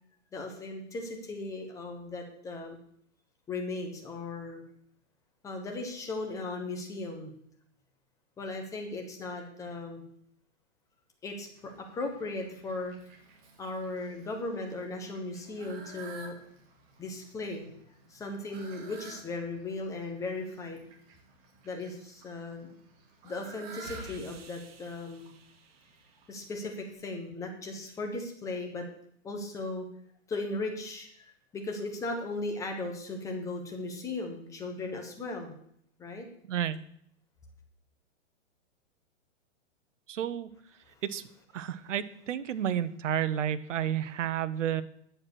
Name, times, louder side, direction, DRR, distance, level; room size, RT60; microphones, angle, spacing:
voice 1, 0.3-2.8 3.5-4.6 5.4-7.3 8.4-10.0 11.2-12.9 13.6-16.4 17.0-17.7 18.1-20.8 21.6-22.7 23.2-25.3 26.3-28.8 29.2-29.9 30.3-31.2 31.5-35.5 36.0-36.3, left 2 dB, 10° left, 3 dB, 1.1 m, -37 dB
Fowl, 11.5-26.9, right 4 dB, 30° right, 2.2 m, -53 dB
sound 1, 23.8-26.6, right 2 dB, 50° right, 1.7 m, -51 dB
voice 2, 36.5-36.8 40.1-40.5 41.0-41.2 41.5-44.8, right 10 dB, 75° right, 14 dB, 1.0 m, -31 dB
9.6 x 7.6 x 6.3 m, 0.67 s
hypercardioid pair, 165°, 37 cm